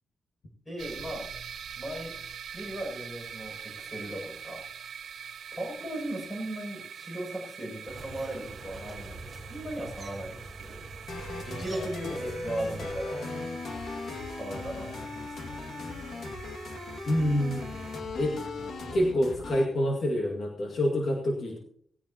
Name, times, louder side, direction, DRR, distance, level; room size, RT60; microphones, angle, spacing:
voice 1, 0.6-1.3 1.8-2.2 2.5-4.6 5.5-13.2 14.3-15.0, right 1 dB, 10° left, 0 dB, 6.9 m, -37 dB
sound 1, 0.8-18.0, right 7 dB, 75° right, 1.1 m, -45 dB
sound 2, 7.9-12.9, right 2 dB, 30° right, 3.9 m, -44 dB
sound 3, 11.1-19.6, left 3 dB, 65° left, 2.1 m, -38 dB
voice 2, 17.1-17.7 18.2-18.4 18.9-21.6, equal, 50° left, -1 dB, 2.1 m, -27 dB
18.0 x 17.5 x 2.9 m, 0.64 s
wide cardioid pair, 155°, 0 cm